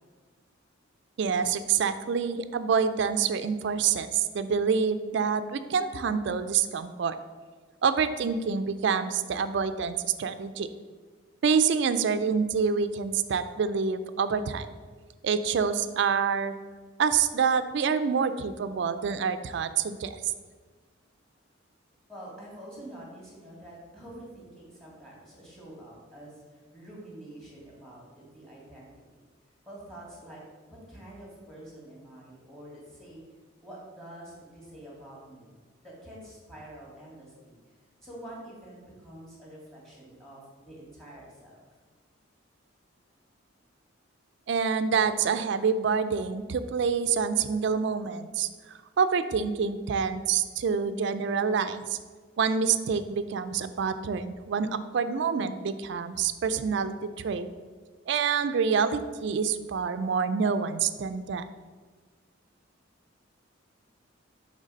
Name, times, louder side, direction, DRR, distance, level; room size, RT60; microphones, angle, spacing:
voice 1, 1.2-7.2 7.8-10.7 11.4-14.7 15.2-16.6 17.0-20.3 44.5-52.0 52.4-57.5 58.1-61.5, right 6 dB, 60° right, 11 dB, 0.3 m, -27 dB
voice 2, 22.1-28.9 29.7-33.2 33.6-35.5 35.8-37.5 38.0-41.6, right 1 dB, ahead, -4 dB, 1.8 m, -47 dB
6.5 x 3.3 x 5.1 m, 1.4 s
head